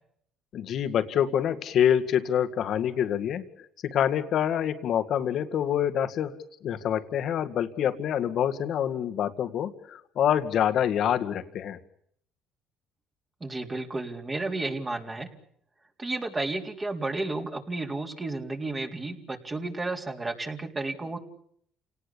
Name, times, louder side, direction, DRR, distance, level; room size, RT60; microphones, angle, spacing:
voice 1, 0.5-3.4 3.8-6.4 6.6-11.8, left 9 dB, 60° left, 9 dB, 2.0 m, -26 dB
voice 2, 13.4-15.3 16.0-21.2, right 2 dB, 25° right, 2 dB, 3.8 m, -32 dB
28.5 x 18.5 x 8.7 m, 0.67 s
supercardioid pair, 85°, 0 cm